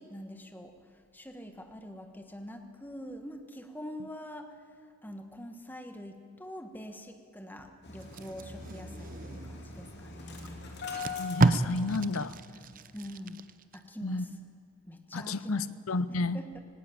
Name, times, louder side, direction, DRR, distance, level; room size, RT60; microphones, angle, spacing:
voice 1, 0.0-10.6 12.9-13.4 13.7-14.4 14.9-15.7 16.1-16.6, equal, 10° left, 6 dB, 1.4 m, -44 dB
Engine starting, 7.8-12.4 12.7-12.8 13.1-13.3, left 4 dB, 50° left, 3.2 m, -42 dB
Packing tape duct tape, 8.0-9.7 10.4-10.5 10.8-13.8 14.2-14.4, right 2 dB, 40° right, 0.6 m, -31 dB
voice 2, 11.2-12.4 14.0-14.3 15.1-16.4, left 3 dB, 75° left, 16 dB, 0.7 m, -32 dB
18.5 x 18.5 x 8.9 m, 2.5 s
head